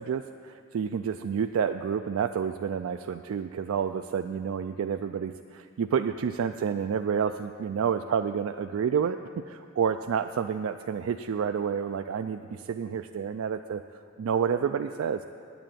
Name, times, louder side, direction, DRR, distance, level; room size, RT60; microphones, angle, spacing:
voice 1, 0.0-9.2 9.5-13.8 14.2-15.2, right 7 dB, 80° right, 7 dB, 0.3 m, -29 dB
9.1 x 8.6 x 9.0 m, 2.3 s
head